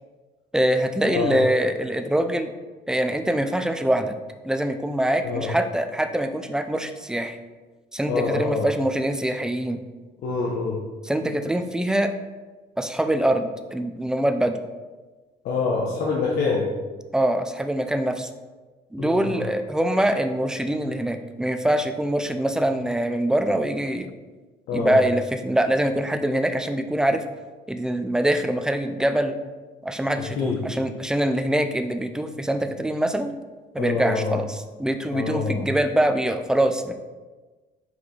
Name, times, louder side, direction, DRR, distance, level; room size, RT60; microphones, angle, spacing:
voice 1, 0.5-2.5 2.9-4.1 4.4-7.4 7.9-9.8 11.1-12.1 12.8-14.6 17.1-18.3 18.9-24.1 24.7-27.2 27.7-29.4 29.8-33.3 33.7-36.9, right 1 dB, 5° right, 8 dB, 0.5 m, -24 dB
voice 2, 1.1-1.4 5.2-5.5 8.1-8.7 10.2-10.8 15.4-16.7 19.0-19.5 24.7-25.0 30.2-30.6 33.8-34.4 35.1-35.6, left 4 dB, 65° left, -3 dB, 1.1 m, -26 dB
6.0 x 4.8 x 3.9 m, 1.3 s
cardioid pair, 110°, 17 cm